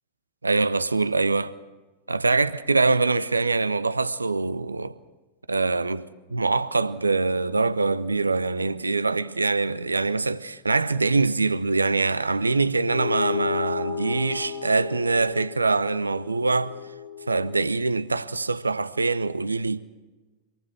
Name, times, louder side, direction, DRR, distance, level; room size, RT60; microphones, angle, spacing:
voice 1, 0.4-1.5 2.1-5.0 5.5-16.7 17.3-19.8, right 3 dB, 80° right, 0.9 m, -24 dB
sound 1, 12.8-17.6, left 8 dB, 45° left, 2.8 m, -34 dB
26.0 x 19.0 x 6.2 m
figure-of-eight pair, 90°, 0 cm